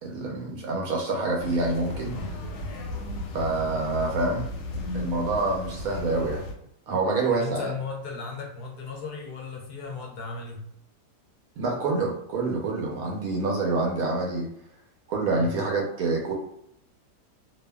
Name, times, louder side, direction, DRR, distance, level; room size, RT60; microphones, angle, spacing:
voice 1, 0.0-2.2 3.3-4.5 4.9-6.4 6.9-7.7 11.6-14.5 15.1-16.3, right 3 dB, 70° right, -1 dB, 0.9 m, -27 dB
sound 1, 1.4-6.5, left 2 dB, 90° left, 1.2 m, -34 dB
voice 2, 7.3-10.6 15.3-15.6, left 4 dB, 70° left, 0 dB, 1.0 m, -36 dB
2.6 x 2.4 x 2.2 m, 0.75 s
omnidirectional pair, 1.8 m